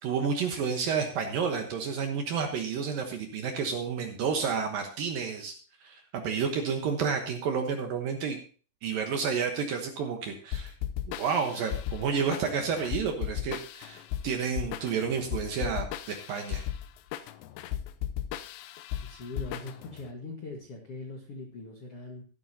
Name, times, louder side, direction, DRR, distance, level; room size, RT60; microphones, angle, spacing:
voice 1, 0.0-5.5 5.8-8.4 8.8-10.7 11.1-16.6, right 6 dB, 65° right, 5 dB, 2.3 m, -30 dB
sound 1, 10.5-20.1, left 11 dB, 80° left, 2.7 m, -36 dB
voice 2, 19.0-22.2, left 2 dB, 65° left, 2 dB, 1.4 m, -41 dB
14.5 x 11.5 x 2.8 m, 0.40 s
omnidirectional pair, 5.3 m